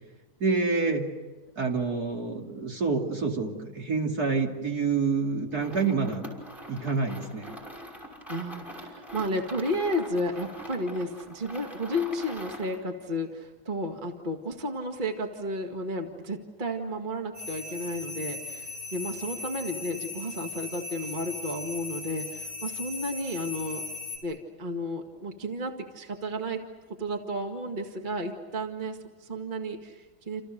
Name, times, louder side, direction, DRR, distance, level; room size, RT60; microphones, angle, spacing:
voice 1, 0.4-1.1 1.6-6.3 6.7-7.6, right 4 dB, 50° right, 1 dB, 3.2 m, -27 dB
sound 1, 5.5-12.8, equal, ahead, 5.7 m, -43 dB
voice 2, 8.3-23.8 24.2-26.6 27.0-30.4, equal, 25° right, 3 dB, 2.0 m, -32 dB
sound 2, 17.3-24.2, left 3 dB, 75° right, 6.0 m, -38 dB
29.0 x 29.0 x 6.8 m, 1.2 s
omnidirectional pair, 2.2 m